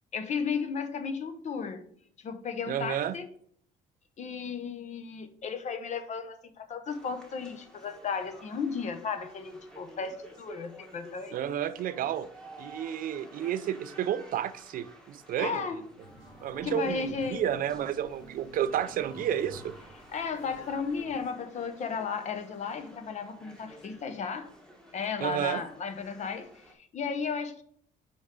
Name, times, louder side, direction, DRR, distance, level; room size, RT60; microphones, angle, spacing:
voice 1, 0.1-1.8 2.2-3.3 4.2-11.4 15.4-15.9 16.6-17.5 20.1-24.5 24.9-27.6, left 5 dB, 45° left, 0.8 m, -34 dB
voice 2, 2.7-3.1 11.3-12.3 12.6-15.7 16.4-19.7 25.2-25.6, right 10 dB, 55° right, 0.4 m, -31 dB
sound 1, 6.9-26.7, right 1 dB, 5° left, 1.2 m, -53 dB
sound 2, 16.0-21.2, equal, 25° left, 2.2 m, -50 dB
5.4 x 4.6 x 5.1 m
cardioid pair, 110°, 17 cm